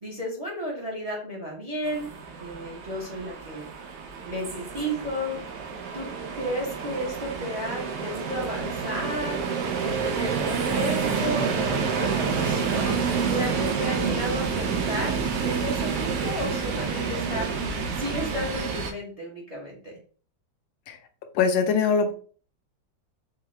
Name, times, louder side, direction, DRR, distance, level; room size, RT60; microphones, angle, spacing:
voice 1, 0.0-2.1 2.4-3.7 4.2-5.4 5.9-6.1 6.3-9.4 9.8-17.5 17.9-19.9, equal, 30° right, -3 dB, 0.7 m, -33 dB
sound 1, 1.9-18.9, right 5 dB, 70° right, 1.1 m, -28 dB
voice 2, 21.3-22.1, left 5 dB, 85° left, 7 dB, 1.4 m, -22 dB
4.6 x 2.4 x 3.1 m, 0.43 s
omnidirectional pair, 2.0 m